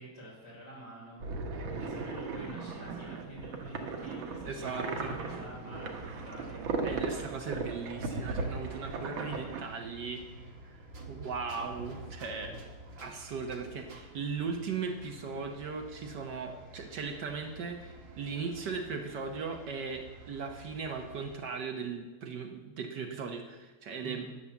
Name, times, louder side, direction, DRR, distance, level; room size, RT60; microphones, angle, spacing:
voice 1, 0.0-6.7 12.2-12.5 24.0-24.4, equal, 55° left, -4 dB, 4.8 m, -48 dB
sound 1, 1.2-9.6, right 3 dB, 85° right, 2.0 m, -37 dB
voice 2, 4.4-5.2 6.8-10.2 11.1-12.6 13.0-24.3, right 5 dB, 65° right, 4 dB, 1.5 m, -38 dB
sound 2, 4.6-21.3, right 1 dB, 35° right, 1.2 m, -50 dB
11.0 x 7.2 x 7.0 m, 1.2 s
omnidirectional pair, 2.1 m